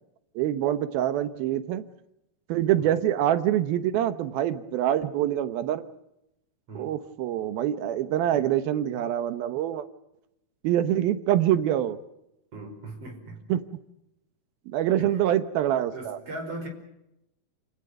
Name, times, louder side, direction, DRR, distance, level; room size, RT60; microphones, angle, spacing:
voice 1, 0.4-1.8 2.5-5.8 6.7-9.9 10.6-12.0 13.5-13.6 14.7-16.2, right 11 dB, 80° right, 12 dB, 2.9 m, -25 dB
voice 2, 12.5-13.4 15.0-15.2 15.9-16.7, right 2 dB, 40° right, 4 dB, 6.1 m, -39 dB
28.5 x 19.0 x 7.9 m, 0.85 s
omnidirectional pair, 4.2 m